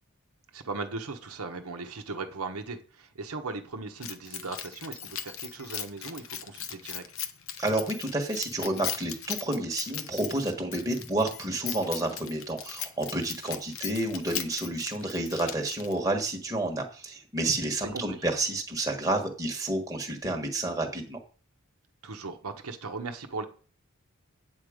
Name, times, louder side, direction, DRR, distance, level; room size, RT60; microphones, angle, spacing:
voice 1, 0.5-7.0 17.8-18.2 22.0-23.5, right 3 dB, 85° right, 1.1 m, -38 dB
Keys jangling, 4.0-16.1, left 9 dB, 65° left, 0.9 m, -39 dB
voice 2, 7.6-21.2, right 2 dB, 15° right, 1.3 m, -30 dB
8.3 x 8.0 x 5.0 m
head